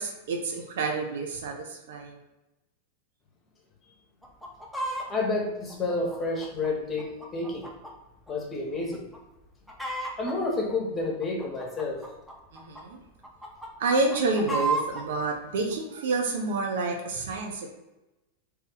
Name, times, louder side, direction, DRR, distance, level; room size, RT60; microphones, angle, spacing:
voice 1, 0.0-2.2 12.5-13.0 13.8-17.7, right 3 dB, 55° right, 1 dB, 0.6 m, -29 dB
Chicken rooster, 4.2-5.1 5.7-7.9 8.3-8.4 8.9-9.2 9.4-10.3 11.0-12.8 13.2-15.0 15.7-15.8, right 2 dB, ahead, 0.6 m, -33 dB
voice 2, 5.1-7.7 8.3-9.0 10.2-12.0, left 3 dB, 20° left, -1 dB, 1.0 m, -30 dB
2.8 x 2.6 x 3.8 m, 0.99 s
figure-of-eight pair, 90°, 0 cm